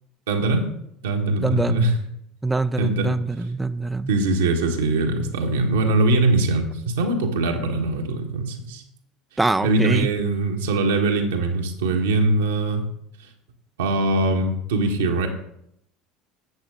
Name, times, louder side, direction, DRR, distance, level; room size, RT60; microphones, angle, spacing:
voice 1, 0.3-0.7 1.0-1.9 2.8-3.1 4.1-8.8 9.6-12.8 13.8-15.3, right 2 dB, 70° right, 3 dB, 1.4 m, -22 dB
voice 2, 1.4-1.8 2.4-4.1 9.4-10.1, right 3 dB, 10° right, 13 dB, 0.4 m, -24 dB
11.5 x 8.0 x 3.6 m, 0.76 s
figure-of-eight pair, 70°, 0 cm